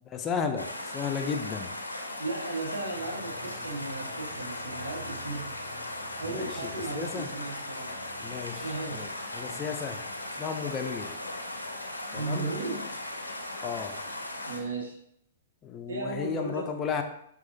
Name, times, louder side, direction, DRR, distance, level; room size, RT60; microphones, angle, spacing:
voice 1, 0.1-1.7 6.3-7.3 8.2-10.1 10.3-11.2 12.1-12.5 13.6-14.0 15.6-17.0, left 6 dB, 25° left, 5 dB, 0.4 m, -34 dB
sound 1, 0.6-14.6, left 1 dB, 90° left, 0.5 m, -38 dB
voice 2, 2.2-5.5 6.2-7.9 8.6-9.1 12.1-12.9 14.4-15.0 15.9-16.7, right 3 dB, 70° right, -1 dB, 1.2 m, -35 dB
sound 2, 2.6-13.5 13.7-13.8, right 1 dB, 15° right, 0.9 m, -54 dB
5.9 x 2.4 x 2.7 m, 0.73 s
figure-of-eight pair, 110°, 0 cm